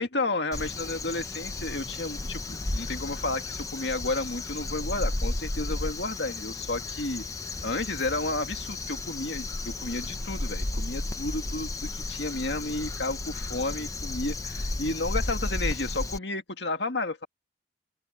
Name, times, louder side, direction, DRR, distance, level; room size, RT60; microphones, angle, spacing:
voice 1, 0.0-7.2 7.6-17.3, left 2 dB, 65° left, 2.1 m, -32 dB
Crow, 0.5-16.2, left 2 dB, 15° left, 0.8 m, -33 dB
open air
head